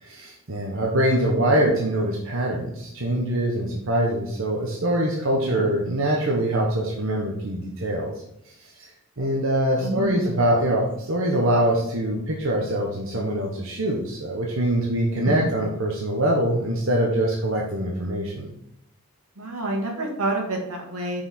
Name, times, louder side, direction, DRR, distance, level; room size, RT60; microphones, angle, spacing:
voice 1, 0.0-8.1 9.2-18.5, right 1 dB, 60° right, -1 dB, 1.0 m, -23 dB
voice 2, 9.8-10.4 15.2-15.5 19.4-21.2, right 2 dB, 80° right, 2 dB, 1.5 m, -29 dB
5.8 x 4.9 x 4.2 m, 0.78 s
head